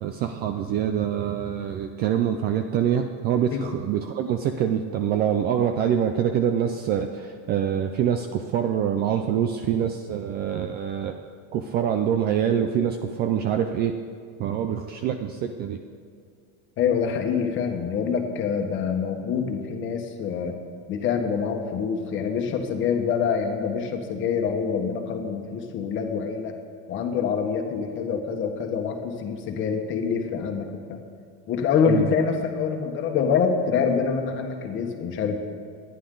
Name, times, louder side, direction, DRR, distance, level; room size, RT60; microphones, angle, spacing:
voice 1, 0.0-11.1 11.5-14.0 14.4-15.8 31.9-32.1, right 9 dB, 30° right, 7 dB, 0.4 m, -25 dB
voice 2, 16.8-20.5 20.9-26.5 26.9-31.0 31.5-35.4, left 6 dB, 30° left, 3 dB, 1.4 m, -26 dB
26.5 x 10.5 x 3.9 m, 2.2 s
cardioid pair, 175°, 37 cm